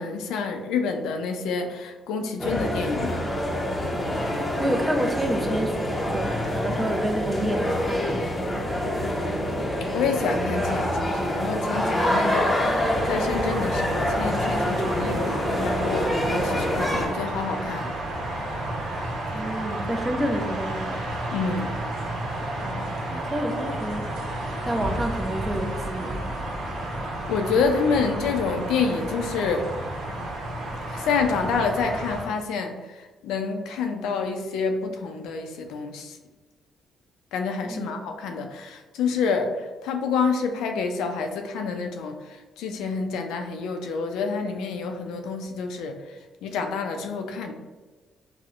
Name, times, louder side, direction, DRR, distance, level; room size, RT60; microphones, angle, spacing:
voice 1, 0.0-3.3 9.8-17.9 21.3-21.7 27.3-29.7 30.9-36.2 37.3-46.0 46.4-47.5, left 5 dB, 90° left, 5 dB, 0.3 m, -28 dB
sound 1, 2.4-17.1, left 1 dB, 20° left, 0.6 m, -26 dB
voice 2, 4.3-8.8 19.3-21.0 22.6-24.1 24.7-26.3 37.6-37.9, right 1 dB, 15° right, 3 dB, 0.5 m, -29 dB
sound 2, 12.8-32.2, right 1 dB, 75° right, 0.7 m, -32 dB
4.3 x 2.0 x 2.4 m, 1.3 s
cardioid pair, 90°, 0 cm